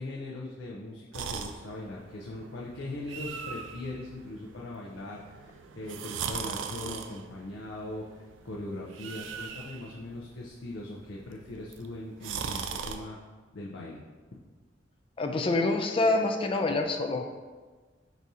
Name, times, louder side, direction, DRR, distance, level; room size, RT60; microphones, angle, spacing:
voice 1, 0.0-13.2 13.5-14.0, left 2 dB, 85° left, -4 dB, 0.6 m, -40 dB
sound 1, 1.1-13.0, right 6 dB, 85° right, 0.4 m, -40 dB
voice 2, 15.2-17.2, left 2 dB, 30° left, 4 dB, 0.4 m, -26 dB
4.0 x 2.7 x 4.7 m, 1.4 s
head